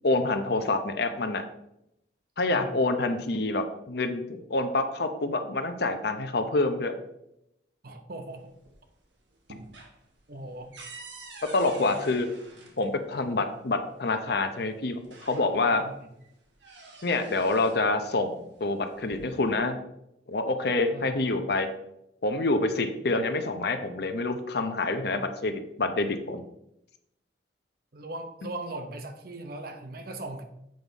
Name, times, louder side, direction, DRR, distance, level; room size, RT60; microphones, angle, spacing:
voice 1, 0.0-1.4 2.4-6.9 11.5-12.3 12.8-15.8 17.0-19.8 20.3-21.7 22.2-26.4, left 2 dB, 60° left, 8 dB, 0.7 m, -27 dB
voice 2, 7.8-8.5 10.3-10.8 11.7-12.0 15.7-15.9 20.9-21.1 27.9-30.4, right 2 dB, 55° right, 6 dB, 0.9 m, -39 dB
sound 1, 8.3-9.0 9.3-13.3 14.4-14.5 14.9-15.8 16.2-17.9 18.8-19.6, right 3 dB, 75° right, 1.5 m, -48 dB
7.8 x 5.4 x 4.0 m, 0.82 s
head